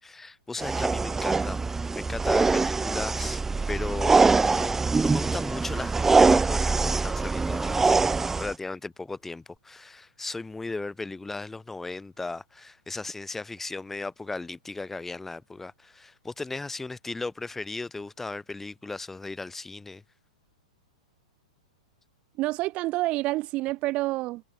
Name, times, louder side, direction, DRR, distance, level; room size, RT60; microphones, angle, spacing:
voice 1, 0.0-8.0 8.4-20.0, left 3 dB, 10° left, 7.4 m, -36 dB
sound 1, 0.6-8.5, right 4 dB, 10° right, 1.3 m, -23 dB
voice 2, 22.4-24.4, right 19 dB, 35° right, 1.1 m, -28 dB
figure-of-eight pair, 100°, 4 cm